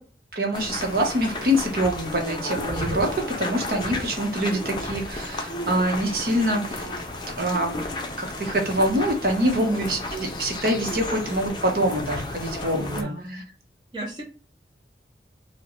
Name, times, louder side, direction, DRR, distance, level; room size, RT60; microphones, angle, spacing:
voice 1, 0.3-6.8 7.4-7.8 8.2-13.4, equal, 55° right, 2 dB, 0.9 m, -25 dB
sound 1, 0.5-13.0, left 2 dB, 25° left, 0.5 m, -33 dB
voice 2, 9.4-9.8 12.7-13.4 13.9-14.2, right 2 dB, 25° right, -2 dB, 0.7 m, -32 dB
5.1 x 2.2 x 3.0 m, 0.38 s
head